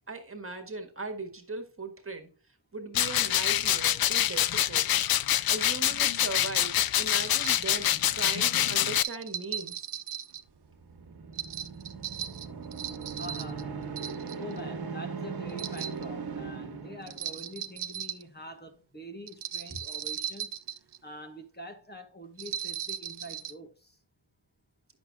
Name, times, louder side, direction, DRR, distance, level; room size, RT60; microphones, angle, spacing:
voice 1, 0.1-2.3 2.7-4.9 5.5-9.9 19.7-19.8, right 3 dB, 35° right, 1.6 m, -39 dB
sound 1, 2.9-9.0, left 11 dB, 65° left, 0.5 m, -26 dB
sound 2, 7.3-7.6 8.9-10.4 11.3-13.6 14.0-14.6 15.5-16.0 17.1-18.2 19.3-21.0 22.4-23.5, right 9 dB, 80° right, 0.6 m, -37 dB
sound 3, 10.6-17.6, right 5 dB, 65° right, 1.5 m, -39 dB
voice 2, 13.2-13.7 14.4-20.6 21.0-24.0, equal, 25° left, 1.5 m, -45 dB
10.5 x 6.9 x 2.3 m
wide cardioid pair, 125°, 39 cm